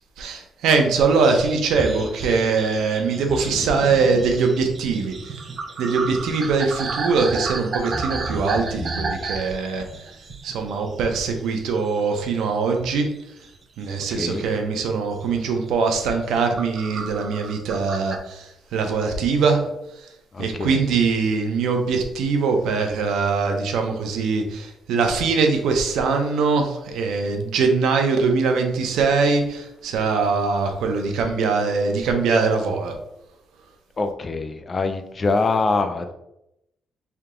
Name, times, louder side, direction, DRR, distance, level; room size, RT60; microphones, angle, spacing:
voice 1, 0.2-5.4 5.8-10.1 10.4-13.1 13.8-19.6 20.0-20.1 20.4-33.0, right 4 dB, 90° right, 4 dB, 0.7 m, -22 dB
sound 1, 1.1-11.6 11.8-12.5 12.8-14.3 14.8-15.0 15.3-15.5 16.1-18.2, right 4 dB, 35° right, 0.5 m, -33 dB
voice 2, 3.5-4.2 14.1-14.5 20.3-20.8 34.0-36.1, left 3 dB, 30° left, 8 dB, 0.4 m, -25 dB
sound 2, 7.5-7.6 7.8-9.8 10.3-10.6 11.1-11.2, right 1 dB, 50° left, 1.1 m, -34 dB
3.5 x 2.8 x 3.7 m, 0.83 s
cardioid pair, 140°, 0 cm